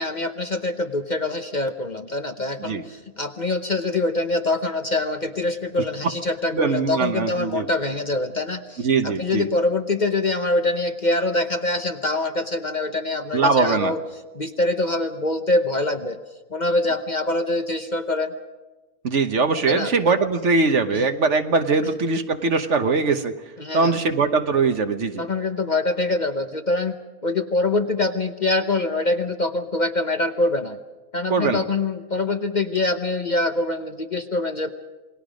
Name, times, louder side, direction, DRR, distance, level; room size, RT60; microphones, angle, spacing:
voice 1, 0.0-14.0 14.3-16.2 16.5-18.3 19.7-19.9 20.9-21.0 23.6-24.0 25.2-27.0 27.2-30.8 31.1-34.7, left 2 dB, 35° left, 6 dB, 0.9 m, -24 dB
voice 2, 6.5-7.7 8.8-9.5 13.3-13.9 19.0-23.3 23.7-25.2 31.3-31.6, right 4 dB, 55° right, 8 dB, 1.4 m, -21 dB
28.5 x 20.5 x 5.2 m, 1.2 s
omnidirectional pair, 1.5 m